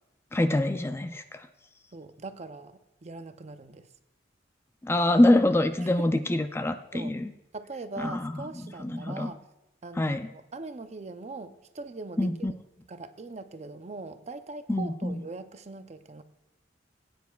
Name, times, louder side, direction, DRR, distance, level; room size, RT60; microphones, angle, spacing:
voice 1, 0.3-1.4 4.8-7.3 8.0-8.4 8.8-9.3 10.0-10.3 12.2-12.5 14.7-15.2, left 1 dB, 15° left, 8 dB, 0.3 m, -25 dB
voice 2, 1.9-3.9 5.8-6.1 6.9-7.1 7.5-9.4 9.8-12.5 12.9-16.2, right 3 dB, 40° right, 10 dB, 0.6 m, -41 dB
17.5 x 9.3 x 2.3 m, 0.91 s
head